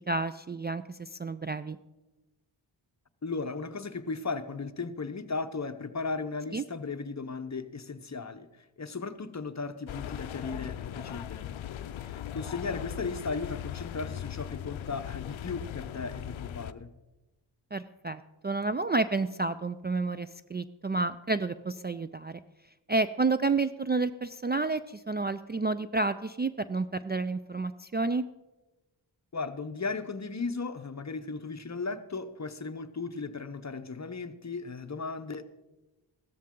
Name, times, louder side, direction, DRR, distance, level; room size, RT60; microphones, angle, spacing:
voice 1, 0.1-1.8 6.5-6.6 17.7-22.4 22.9-28.3, right 3 dB, 25° right, 12 dB, 0.4 m, -30 dB
voice 2, 3.2-11.6 12.0-16.9 29.3-35.4, left 4 dB, 35° left, 10 dB, 0.8 m, -36 dB
sound 1, 9.9-16.7, left 11 dB, 90° left, 0.5 m, -39 dB
15.0 x 13.0 x 3.7 m, 1.1 s
cardioid pair, 50°, 46 cm